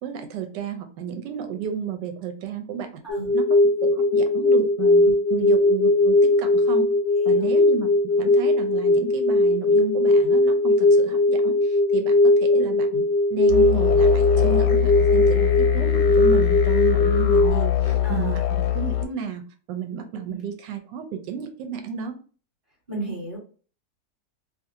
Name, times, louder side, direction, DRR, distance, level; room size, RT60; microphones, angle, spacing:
voice 1, 0.0-3.0 3.3-5.0 5.3-6.9 7.3-7.9 8.2-19.4 19.7-22.2, right 7 dB, 90° right, 6 dB, 1.3 m, -32 dB
sound 1, 3.1-17.5, left 2 dB, 60° left, 0.7 m, -19 dB
voice 2, 5.0-5.5 7.2-7.5 15.1-15.4 18.0-18.4 20.3-20.4 22.9-23.4, right 2 dB, 35° right, -6 dB, 1.2 m, -35 dB
sound 2, 13.5-19.1, left 12 dB, 85° left, 1.2 m, -22 dB
2.8 x 2.5 x 2.6 m, 0.39 s
omnidirectional pair, 1.9 m